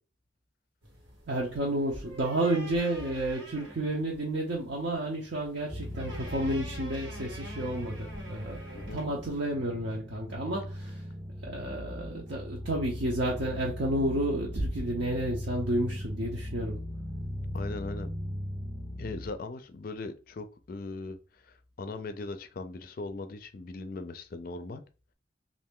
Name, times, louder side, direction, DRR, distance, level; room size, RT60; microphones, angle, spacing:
sound 1, 0.8-9.5, right 1 dB, 85° right, 1.5 m, -46 dB
voice 1, 1.3-8.6 8.9-11.0 11.4-16.8, right 1 dB, 60° right, 0.6 m, -31 dB
sound 2, 5.7-19.3, left 1 dB, 5° right, 0.5 m, -39 dB
voice 2, 17.5-18.1 19.0-24.8, left 3 dB, 45° left, 0.4 m, -39 dB
3.2 x 2.5 x 3.6 m
head